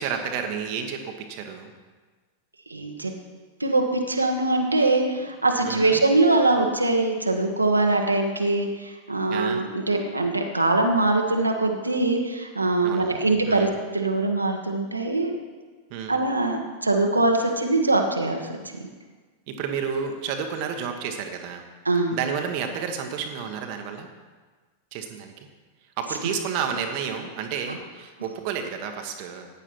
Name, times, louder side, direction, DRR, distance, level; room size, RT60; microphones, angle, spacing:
voice 1, 0.0-1.7 5.6-6.0 9.3-9.6 12.8-13.7 15.9-16.2 19.5-21.6 22.1-24.1 24.9-25.5 26.0-29.5, right 7 dB, 45° right, 4 dB, 1.2 m, -31 dB
voice 2, 2.7-3.1 3.6-13.7 13.9-15.3 16.1-18.5 18.8-18.9 21.8-22.2, right 2 dB, 85° right, 2 dB, 1.3 m, -22 dB
15.0 x 9.7 x 4.5 m, 1.4 s
figure-of-eight pair, 90°, 0 cm